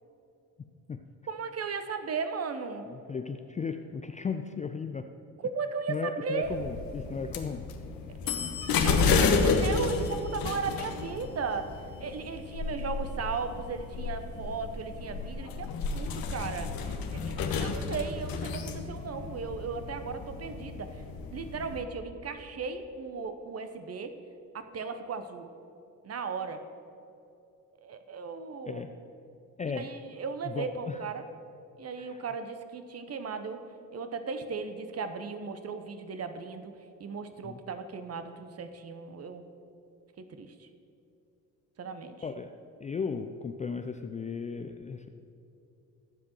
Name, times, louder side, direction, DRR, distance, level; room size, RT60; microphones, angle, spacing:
voice 1, 1.3-2.8 5.4-6.5 8.2-8.3 8.8-11.7 12.0-21.0 21.3-24.1 24.5-25.5 26.0-26.6 27.8-28.8 29.7-31.2 31.8-33.6 33.9-36.7 37.0-39.4 40.2-40.7 41.8-42.2, right 5 dB, 35° right, 9 dB, 0.9 m, -36 dB
voice 2, 2.9-5.1 5.9-7.6 28.7-28.9 29.6-29.9 30.4-31.0 32.0-32.2 37.4-37.6 42.2-42.5 42.8-45.1, left 5 dB, 20° left, 6 dB, 0.4 m, -35 dB
sound 1, 6.4-21.8, left 5 dB, 55° left, 1.1 m, -31 dB
22.0 x 7.4 x 3.0 m, 2.8 s
figure-of-eight pair, 45°, 44 cm